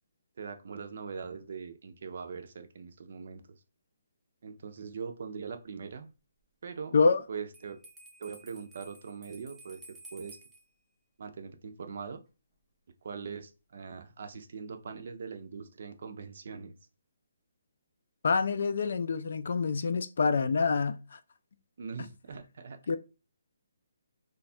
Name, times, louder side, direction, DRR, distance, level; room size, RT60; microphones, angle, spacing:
voice 1, 0.4-3.4 4.4-6.1 6.6-6.9 7.3-7.8 8.2-10.4 11.2-12.2 13.0-16.8 21.8-22.8, right 5 dB, 45° right, 0.5 m, -41 dB
Bell, 7.5-10.6, right 2 dB, 5° right, 0.6 m, -53 dB
voice 2, 18.2-21.2 22.9-23.0, left 4 dB, 55° left, 0.4 m, -26 dB
3.1 x 2.3 x 4.2 m
hypercardioid pair, 175°, 0 cm